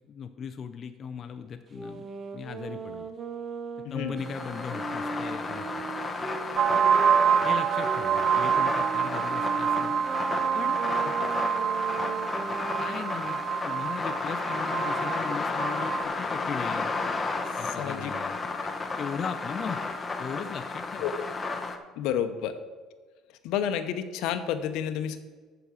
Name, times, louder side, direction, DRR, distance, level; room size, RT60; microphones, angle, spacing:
voice 1, 0.1-3.1 3.9-5.8 7.4-10.0 10.5-10.8 12.8-13.4 13.6-16.9 17.6-18.4 19.0-21.1, left 7 dB, 35° left, 7 dB, 0.4 m, -38 dB
sound 1, 1.7-7.2 7.8-13.2, right 4 dB, 25° right, 0.8 m, -38 dB
voice 2, 3.8-4.2 11.2-11.4 17.8-18.1 18.6-18.7 21.0-21.3 22.0-22.5 23.4-25.2, left 9 dB, 75° left, 10 dB, 0.8 m, -30 dB
sound 2, 4.2-21.8, left 3 dB, 15° left, 0.8 m, -33 dB
sound 3, 6.6-16.0, right 8 dB, 50° right, 0.3 m, -27 dB
8.4 x 6.9 x 6.2 m, 1.4 s
cardioid pair, 155°, 0 cm